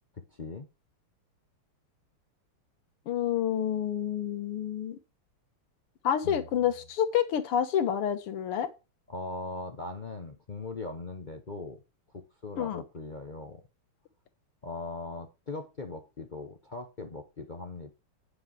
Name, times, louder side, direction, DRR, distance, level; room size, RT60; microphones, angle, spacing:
voice 1, 0.1-0.7 6.2-6.5 9.1-11.8 12.1-13.6 14.6-17.9, left 3 dB, 50° left, 0.5 m, -40 dB
voice 2, 3.1-5.0 6.0-8.7 12.6-12.8, left 9 dB, 90° left, 2.2 m, -28 dB
9.9 x 5.5 x 4.7 m
omnidirectional pair, 2.4 m